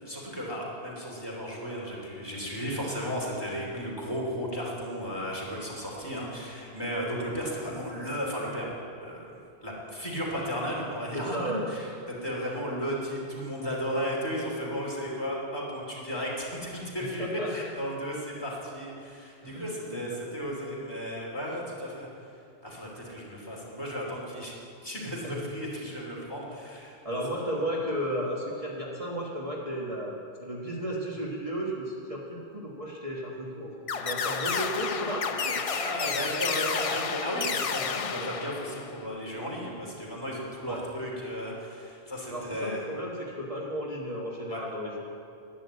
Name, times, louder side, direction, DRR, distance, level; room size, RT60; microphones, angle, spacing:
voice 1, 0.0-8.7 9.0-11.4 11.7-22.1 22.6-24.5 24.8-27.2 35.2-42.8 44.5-44.6, equal, 20° left, -4 dB, 3.0 m, -34 dB
voice 2, 11.1-11.6 17.0-17.1 17.4-17.5 19.4-20.2 25.2-25.4 26.5-26.6 27.0-35.6 36.0-36.1 40.6-40.8 42.3-45.0, equal, 30° right, -4 dB, 1.6 m, -34 dB
sound 1, 33.9-39.0, left 6 dB, 45° left, 0.5 m, -31 dB
11.0 x 10.5 x 8.4 m, 2.5 s
omnidirectional pair, 1.1 m